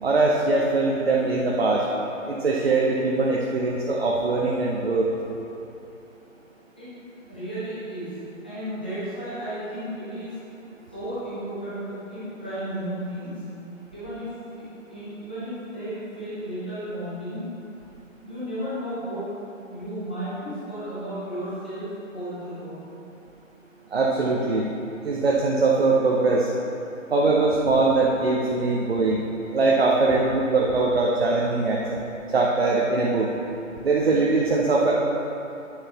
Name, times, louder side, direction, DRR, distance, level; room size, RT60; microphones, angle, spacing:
voice 1, 0.0-1.8 2.3-5.1 23.9-24.7 25.0-26.5 27.1-29.2 29.5-32.0 32.3-33.3 33.8-34.9, right 3 dB, 50° right, -3 dB, 0.8 m, -22 dB
voice 2, 7.3-8.2 8.4-10.4 10.9-13.3 13.9-14.6 14.9-17.4 18.2-19.3 19.7-22.9, right 1 dB, 5° left, -14 dB, 0.6 m, -33 dB
9.2 x 6.8 x 3.0 m, 2.9 s
figure-of-eight pair, 155°, 40 cm